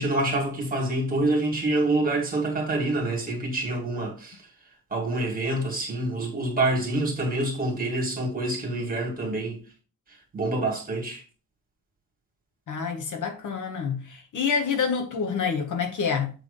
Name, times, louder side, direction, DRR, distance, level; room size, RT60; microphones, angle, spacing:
voice 1, 0.0-4.4 4.9-9.6 10.3-11.2, right 2 dB, 25° right, 2.4 m, -26 dB
voice 2, 12.7-16.3, left 6 dB, 55° left, 1.3 m, -27 dB
7.7 x 3.5 x 5.2 m
wide cardioid pair, 175°, 36 cm